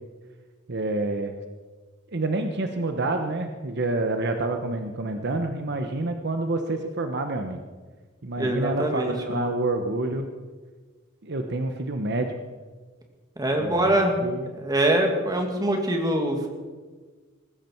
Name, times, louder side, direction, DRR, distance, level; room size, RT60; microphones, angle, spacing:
voice 1, 0.7-1.4 2.1-7.6 8.2-10.3 11.2-12.3 13.6-14.5, right 2 dB, 55° right, 6 dB, 1.0 m, -28 dB
voice 2, 8.4-9.4 13.4-14.1 14.5-16.5, right 1 dB, 20° right, 2 dB, 2.2 m, -24 dB
19.0 x 15.0 x 4.6 m, 1.4 s
head